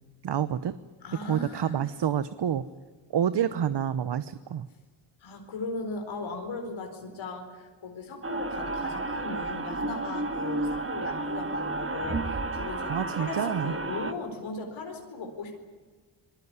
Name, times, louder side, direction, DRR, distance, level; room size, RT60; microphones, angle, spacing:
voice 1, 0.2-0.8 1.2-2.6 3.1-4.7 12.9-13.7, right 9 dB, 65° right, 14 dB, 0.9 m, -28 dB
voice 2, 1.0-1.8 5.2-15.5, left 3 dB, 90° left, 3 dB, 4.4 m, -38 dB
sound 1, 8.2-14.1, right 2 dB, 30° right, 2.0 m, -32 dB
26.0 x 19.5 x 9.7 m, 1.4 s
cardioid pair, 70°, 45 cm